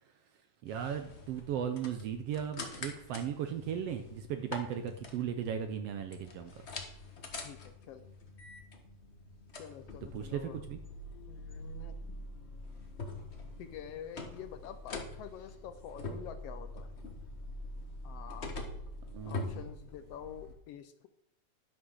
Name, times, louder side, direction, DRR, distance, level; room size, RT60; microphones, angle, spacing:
voice 1, 0.6-6.5 10.1-10.8 19.1-19.6, right 8 dB, 75° right, 8 dB, 1.5 m, -37 dB
sound 1, 0.7-20.5, left 2 dB, 45° left, 0.8 m, -45 dB
voice 2, 7.4-8.0 9.5-10.6 11.3-12.0 13.6-16.9 18.0-18.6 19.3-21.1, left 8 dB, 80° left, 10 dB, 1.4 m, -47 dB
11.5 x 6.0 x 6.3 m, 0.80 s
omnidirectional pair, 3.5 m